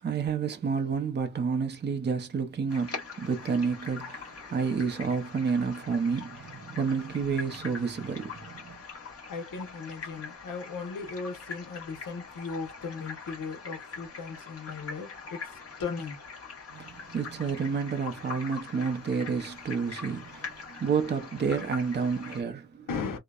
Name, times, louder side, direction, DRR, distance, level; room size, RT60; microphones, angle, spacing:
voice 1, 0.0-8.8 16.7-22.9, right 5 dB, 30° right, 0.5 m, -30 dB
sound 1, 2.7-22.4, left 5 dB, 45° left, 1.1 m, -43 dB
voice 2, 9.3-16.2 22.9-23.2, left 5 dB, 70° left, 0.9 m, -37 dB
2.7 x 2.0 x 2.3 m
wide cardioid pair, 170°, 33 cm